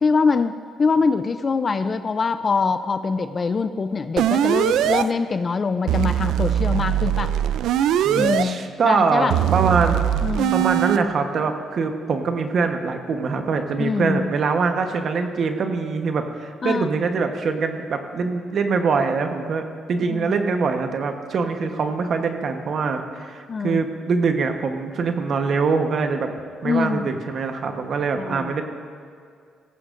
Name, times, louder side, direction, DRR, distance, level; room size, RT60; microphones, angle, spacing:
voice 1, 0.0-7.3 8.1-9.3 10.2-10.5 13.8-14.3 16.6-16.9 20.1-20.3 23.5-23.8 26.6-27.1 28.2-28.5, left 4 dB, 40° left, 11 dB, 0.4 m, -23 dB
sound 1, 4.2-5.0 5.9-8.4 9.3-11.0, right 11 dB, 85° right, 0.3 m, -21 dB
voice 2, 8.0-10.0 10.5-19.6 19.9-26.3 26.6-28.6, right 4 dB, 55° right, 5 dB, 1.1 m, -23 dB
16.5 x 14.5 x 2.6 m, 2.2 s
cardioid pair, 90°, 0 cm